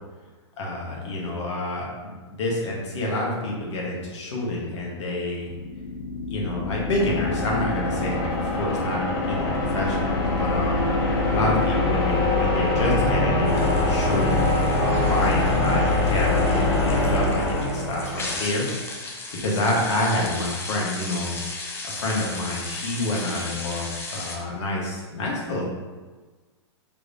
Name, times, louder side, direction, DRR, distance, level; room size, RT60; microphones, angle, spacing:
voice 1, 0.6-5.5 6.3-10.8 11.3-18.7 19.0-21.4 21.8-25.7, left 1 dB, 75° left, -3 dB, 1.1 m, -28 dB
sound 1, 5.5-18.5, left 2 dB, 55° left, 0.8 m, -23 dB
sound 2, 13.5-24.4, left 3 dB, 15° left, 0.5 m, -36 dB
3.6 x 3.1 x 2.6 m, 1.3 s
hypercardioid pair, 125°, 15 cm